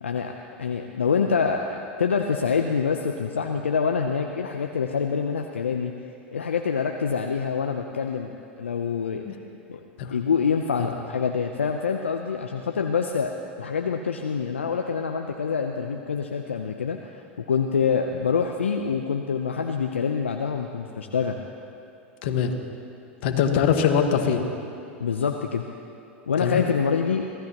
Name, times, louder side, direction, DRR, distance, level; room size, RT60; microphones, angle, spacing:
voice 1, 0.0-5.9 6.3-8.3 8.6-9.2 9.7-9.8 10.1-13.3 13.6-21.4 25.0-25.6 26.3-27.2, left 6 dB, 90° left, 4 dB, 0.7 m, -26 dB
voice 2, 22.2-22.5 23.2-24.4 26.4-26.6, left 7 dB, 65° left, 5 dB, 1.6 m, -22 dB
24.5 x 16.0 x 3.0 m, 2.8 s
hypercardioid pair, 95°, 6 cm